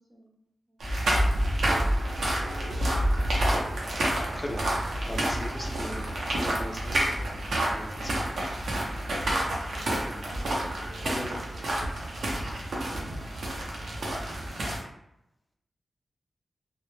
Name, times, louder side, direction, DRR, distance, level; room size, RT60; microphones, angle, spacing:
voice 1, 0.1-0.9 9.1-9.5 10.1-12.0 12.4-12.6, equal, 40° right, -4 dB, 0.6 m, -52 dB
sound 1, 0.8-14.8, right 1 dB, 90° right, 0.6 m, -28 dB
voice 2, 4.3-4.7 5.1-8.3 11.0-11.4, left 1 dB, 20° left, 0 dB, 0.5 m, -39 dB
2.0 x 2.0 x 3.1 m, 0.81 s
wide cardioid pair, 90°, 0 cm